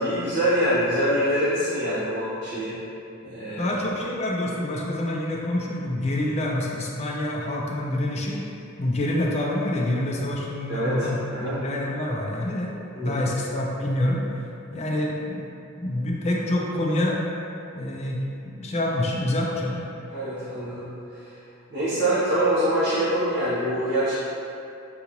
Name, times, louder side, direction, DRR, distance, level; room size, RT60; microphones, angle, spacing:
voice 1, 0.0-2.8 3.2-3.7 10.7-10.9 11.3-11.6 12.9-13.2 20.1-20.9 21.7-24.1, right 1 dB, 55° right, -15 dB, 1.0 m, -24 dB
voice 2, 3.6-8.4 8.8-12.7 13.0-14.2 14.7-17.2 17.7-19.8, left 1 dB, 30° left, -2 dB, 0.4 m, -27 dB
3.8 x 2.4 x 2.9 m, 2.7 s
head